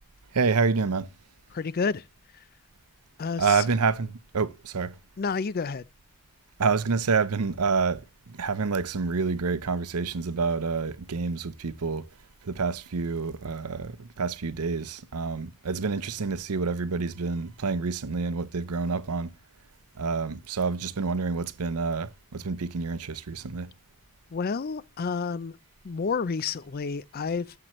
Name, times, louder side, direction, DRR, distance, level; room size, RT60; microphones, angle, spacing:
voice 1, 0.3-1.1 3.4-5.0 6.6-12.1 12.4-19.3 20.0-23.7, right 4 dB, 85° right, 0.7 m, -28 dB
voice 2, 1.5-2.0 3.2-3.6 5.2-5.8 24.3-25.6 25.8-27.6, left 5 dB, 40° left, 0.4 m, -30 dB
12.0 x 7.7 x 3.1 m
head